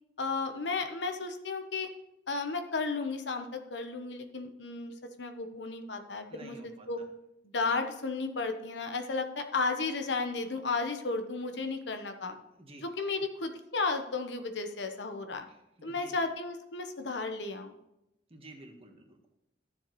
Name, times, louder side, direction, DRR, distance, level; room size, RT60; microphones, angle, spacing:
voice 1, 0.2-1.9 2.3-4.9 5.2-7.0 7.4-12.4 12.8-15.4 15.8-17.7, left 3 dB, 90° left, 6 dB, 1.0 m, -34 dB
voice 2, 6.3-7.0 12.5-12.8 15.5-16.2 18.3-19.3, right 2 dB, 35° right, 3 dB, 1.4 m, -52 dB
13.0 x 7.2 x 3.1 m, 0.86 s
head